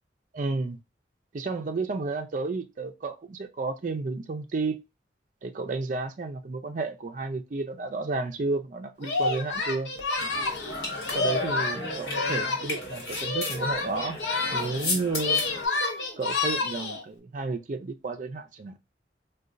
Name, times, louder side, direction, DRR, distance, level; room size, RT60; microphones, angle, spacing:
voice 1, 0.3-0.8 1.3-4.8 5.4-9.9 11.1-14.2 14.5-15.4 16.2-18.7, right 3 dB, 45° right, 0.4 m, -32 dB
Singing, 9.0-12.8 13.1-14.9 15.1-17.0, left 3 dB, 90° left, 0.7 m, -29 dB
sound 1, 10.2-15.7, left 2 dB, 60° left, 1.3 m, -34 dB
3.9 x 2.2 x 2.5 m
head